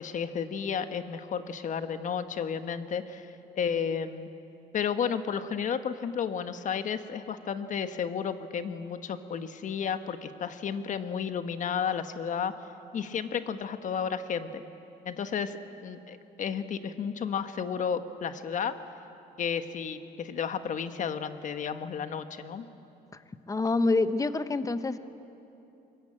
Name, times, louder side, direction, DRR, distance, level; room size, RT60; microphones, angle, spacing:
voice 1, 0.0-4.3 4.7-12.5 12.9-14.6 15.0-18.7 19.4-22.6, left 7 dB, 50° left, 9 dB, 1.2 m, -32 dB
voice 2, 23.5-25.0, left 3 dB, 20° left, 11 dB, 1.0 m, -26 dB
23.0 x 21.0 x 8.8 m, 2.9 s
cardioid pair, 110°, 17 cm